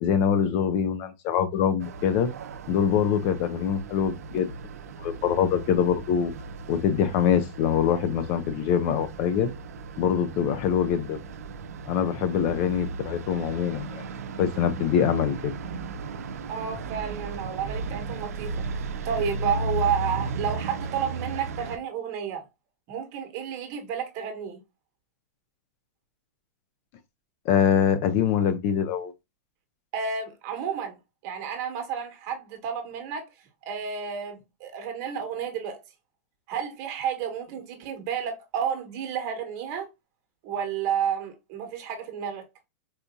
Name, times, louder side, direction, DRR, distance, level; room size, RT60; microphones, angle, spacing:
voice 1, 0.0-2.3 2.7-4.5 5.0-6.3 6.7-9.5 10.0-11.2 11.9-14.0 14.4-15.5 27.5-29.1, left 8 dB, 40° left, 0.5 m, -24 dB
sound 1, 1.8-21.8, right 3 dB, 90° right, 0.5 m, -36 dB
voice 2, 16.5-18.6 19.0-22.4 22.9-24.6 29.9-31.0 31.2-33.3 33.6-35.8 36.5-39.9 40.4-42.5, right 7 dB, 40° right, 1.2 m, -31 dB
4.1 x 2.6 x 2.2 m
supercardioid pair, 145°, 8 cm